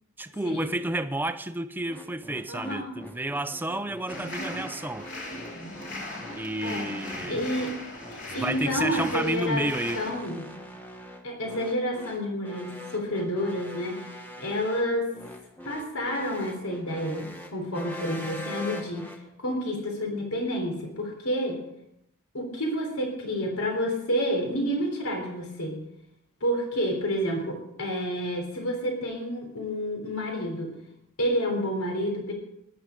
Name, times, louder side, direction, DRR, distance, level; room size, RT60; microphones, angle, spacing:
voice 1, 0.2-5.1 6.3-7.4 8.3-10.0, right 1 dB, 10° right, 0.5 m, -31 dB
sound 1, 1.9-19.2, left 1 dB, 10° left, 1.3 m, -43 dB
voice 2, 2.5-2.9 6.6-6.8 7.3-7.8 8.3-9.7 9.9-10.4 11.2-14.0 14.4-15.1 15.6-19.1 19.4-21.6 22.3-25.8 26.4-30.7 31.2-32.3, equal, 85° left, 3.7 m, -29 dB
sound 2, 4.1-10.1, left 1 dB, 55° left, 3.7 m, -38 dB
14.5 x 11.5 x 5.1 m
head